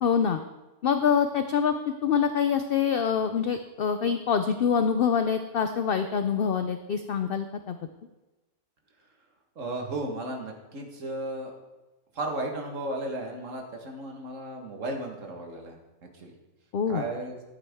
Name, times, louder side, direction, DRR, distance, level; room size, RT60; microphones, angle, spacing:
voice 1, 0.0-0.4 0.8-1.7 2.0-7.8 16.7-17.0, left 7 dB, 70° left, 8 dB, 0.5 m, -25 dB
voice 2, 9.6-11.5 12.1-15.8 16.2-16.3 16.9-17.3, right 2 dB, 60° right, 2 dB, 1.8 m, -34 dB
12.0 x 8.2 x 3.5 m, 1.1 s
omnidirectional pair, 1.5 m